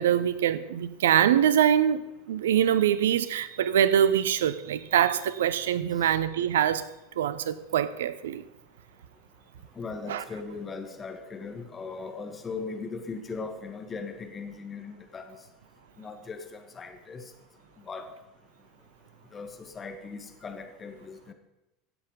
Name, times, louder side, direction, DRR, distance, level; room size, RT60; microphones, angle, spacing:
voice 1, 0.0-2.0 2.3-6.8 7.2-8.4 10.1-10.2, right 10 dB, 70° right, 15 dB, 0.7 m, -24 dB
voice 2, 9.8-15.4 16.0-17.2 17.9-18.1 19.3-21.3, left 4 dB, 25° left, 6 dB, 1.9 m, -39 dB
16.0 x 8.0 x 5.3 m, 0.97 s
figure-of-eight pair, 80°, 0 cm